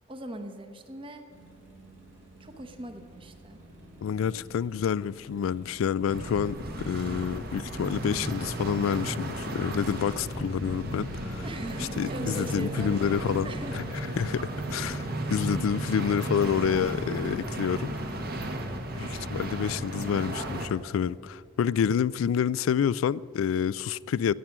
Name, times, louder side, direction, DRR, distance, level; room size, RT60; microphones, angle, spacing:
voice 1, 0.1-1.2 2.4-3.6 11.4-13.1 13.4-13.8 15.1-15.3, right 1 dB, 25° right, 0.9 m, -40 dB
sound 1, 1.3-19.3, equal, 75° right, 3.3 m, -46 dB
voice 2, 4.0-6.6 6.9-11.4 12.0-13.8 14.2-17.9 18.9-24.3, left 7 dB, 85° left, 0.3 m, -28 dB
sound 2, 6.1-20.7, right 1 dB, 50° right, 1.1 m, -34 dB
16.5 x 7.5 x 6.0 m
head